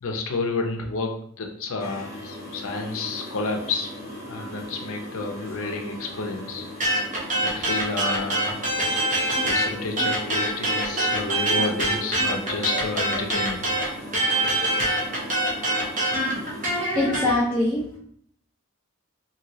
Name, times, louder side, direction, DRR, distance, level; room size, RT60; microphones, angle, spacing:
voice 1, 0.0-3.9 4.3-6.6 7.4-8.7 9.4-13.7, left 3 dB, 75° left, 3 dB, 0.5 m, -30 dB
sound 1, 1.8-16.8, left 1 dB, 30° left, 1.4 m, -38 dB
sound 2, 6.8-9.7 10.0-17.3, right 1 dB, 35° right, 0.7 m, -24 dB
sound 3, 9.3-13.2, equal, 10° right, 1.1 m, -37 dB
voice 2, 16.9-18.0, left 2 dB, 5° left, -7 dB, 0.4 m, -23 dB
2.9 x 2.6 x 2.8 m, 0.66 s
head